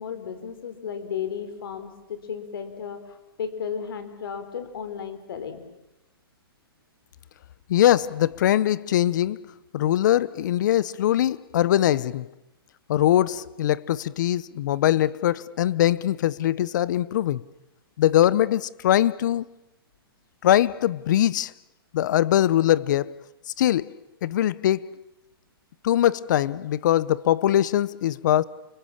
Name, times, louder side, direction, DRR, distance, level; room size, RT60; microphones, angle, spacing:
voice 1, 0.0-5.7, left 7 dB, 65° left, 4.5 m, -34 dB
voice 2, 7.7-9.4 9.7-12.3 12.9-17.4 18.0-19.4 20.4-21.5 21.9-23.1 23.6-23.9 24.2-25.0 25.8-28.4, left 12 dB, 50° left, 0.9 m, -22 dB
29.5 x 23.5 x 7.3 m
hypercardioid pair, 155°, 13 cm